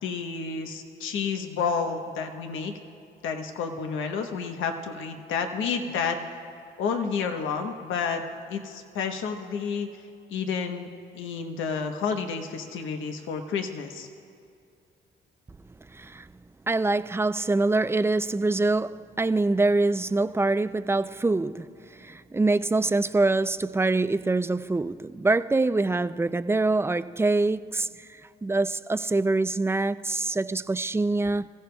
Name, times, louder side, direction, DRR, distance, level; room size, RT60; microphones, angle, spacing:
voice 1, 0.0-2.7 3.2-6.2 6.8-8.2 8.5-9.9 10.3-10.9 11.1-14.1, left 5 dB, 80° left, 1.1 m, -30 dB
voice 2, 15.9-16.3 16.7-31.5, right 2 dB, 10° right, 0.3 m, -25 dB
27.0 x 15.5 x 2.3 m
cardioid pair, 90°, 20 cm